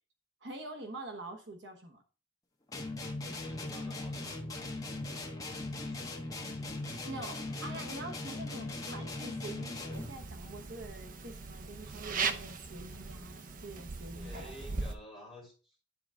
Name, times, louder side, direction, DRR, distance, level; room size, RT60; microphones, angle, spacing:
voice 1, 0.4-2.0 7.0-14.4, right 2 dB, 70° right, 1.1 m, -45 dB
sound 1, 2.7-10.2, left 2 dB, 20° left, 1.1 m, -39 dB
voice 2, 3.3-4.4 5.7-6.2 7.5-7.6 12.7-12.8 14.0-15.8, left 1 dB, ahead, 2.8 m, -52 dB
sound 2, 9.9-15.0, right 4 dB, 45° right, 0.6 m, -39 dB
9.7 x 3.9 x 3.6 m
head